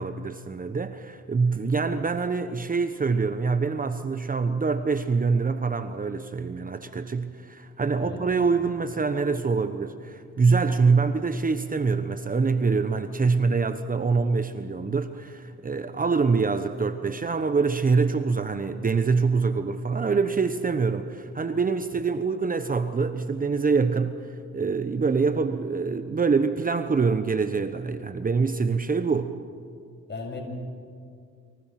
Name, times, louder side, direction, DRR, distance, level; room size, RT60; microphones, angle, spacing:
voice 1, 0.0-29.3, right 4 dB, 30° right, 1.1 m, -25 dB
voice 2, 8.0-8.4 30.1-30.4, left 3 dB, 35° left, 7.1 m, -36 dB
29.5 x 24.5 x 6.0 m
cardioid pair, 90°, 30 cm